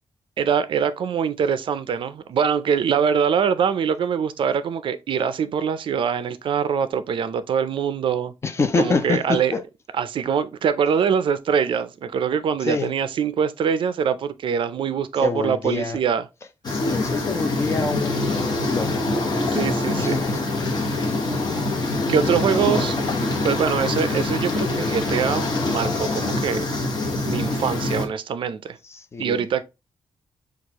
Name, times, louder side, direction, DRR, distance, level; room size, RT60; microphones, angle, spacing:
voice 1, 0.4-8.3 8.8-9.5 10.0-16.2 19.5-20.2 20.8-21.1 22.1-23.0 23.4-26.7 27.3-28.8 29.2-29.6, right 7 dB, 55° right, 0.4 m, -23 dB
voice 2, 8.4-9.6 12.6-12.9 15.2-16.0 16.7-19.0 19.9-20.4 21.0-21.5 28.8-29.4, left 4 dB, 25° left, 0.4 m, -26 dB
sound 1, 16.6-28.1, left 2 dB, 40° left, 1.1 m, -24 dB
6.3 x 2.4 x 2.8 m
wide cardioid pair, 165°, 10 cm